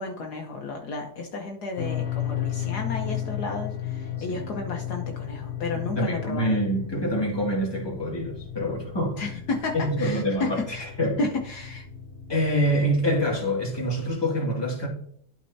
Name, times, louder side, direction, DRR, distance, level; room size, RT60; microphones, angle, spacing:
voice 1, 0.0-6.6 9.2-10.8 11.2-11.8, left 3 dB, 65° left, 1.5 m, -32 dB
sound 1, 1.8-14.1, left 10 dB, 40° left, 0.7 m, -35 dB
voice 2, 6.0-9.2 9.7-11.2 12.3-14.9, equal, 15° left, 2.1 m, -26 dB
12.5 x 4.4 x 2.7 m
omnidirectional pair, 1.9 m